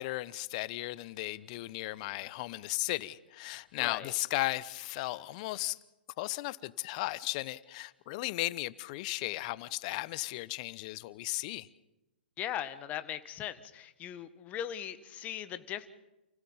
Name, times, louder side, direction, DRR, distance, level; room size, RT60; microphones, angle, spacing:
voice 1, 0.0-5.8 6.2-11.7, left 19 dB, 40° left, 0.9 m, -36 dB
voice 2, 3.8-4.1 12.4-15.9, left 10 dB, 25° left, 1.6 m, -39 dB
29.5 x 16.5 x 7.3 m
hypercardioid pair, 125°, 6 cm